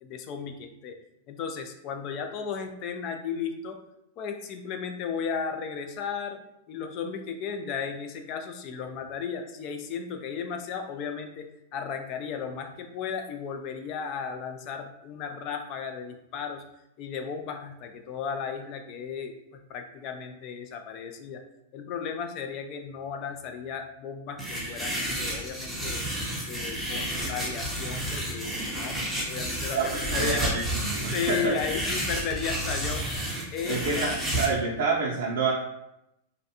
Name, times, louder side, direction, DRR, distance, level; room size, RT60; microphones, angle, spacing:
voice 1, 0.0-1.0 1.3-3.8 4.2-6.4 6.7-16.6 17.0-21.4 21.7-26.0 26.5-29.0 29.3-30.4 31.1-33.2 33.5-34.1, left 6 dB, 40° left, 6 dB, 0.3 m, -35 dB
sound 1, 24.4-34.5, right 1 dB, ahead, 0.7 m, -31 dB
voice 2, 29.7-31.6 33.7-35.5, right 4 dB, 75° right, -3 dB, 0.4 m, -28 dB
2.5 x 2.1 x 2.7 m, 0.84 s
hypercardioid pair, 135°, 0 cm